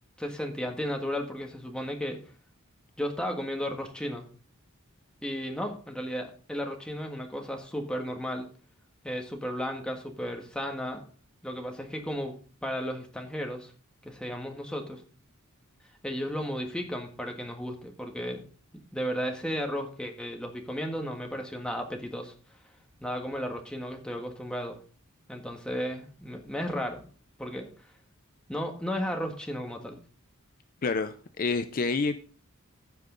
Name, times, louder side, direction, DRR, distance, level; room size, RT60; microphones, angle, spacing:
voice 1, 0.2-2.2 3.0-4.3 5.2-8.5 9.0-11.0 11.4-13.7 14.0-15.0 16.0-18.5 18.9-22.3 23.0-24.8 25.3-27.0 27.4-27.7 28.5-30.0, equal, 5° left, 2 dB, 1.5 m, -34 dB
voice 2, 30.8-32.2, left 4 dB, 40° left, 10 dB, 0.5 m, -28 dB
15.0 x 5.5 x 3.9 m, 0.40 s
head